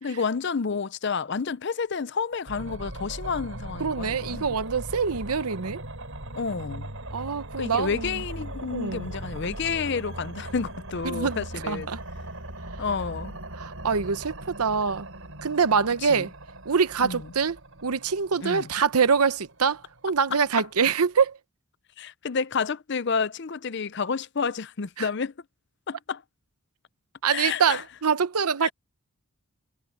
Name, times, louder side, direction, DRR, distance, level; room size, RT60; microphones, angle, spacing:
voice 1, 0.0-4.6 6.4-6.9 7.6-11.9 12.8-13.4 16.0-16.3 17.0-17.2 18.4-18.7 20.6-20.7 22.0-25.3 25.9-26.2 27.3-27.8 28.6-28.7, left 5 dB, 50° left, 0.5 m, -30 dB
sound 1, 2.5-21.2, right 1 dB, 65° right, 5.1 m, -39 dB
voice 2, 3.8-5.8 7.1-8.1 8.7-9.1 11.0-11.4 11.7-12.0 13.6-15.1 15.4-16.3 16.7-17.6 17.8-21.4 25.0-25.1 27.2-28.7, right 5 dB, 85° right, 0.8 m, -25 dB
head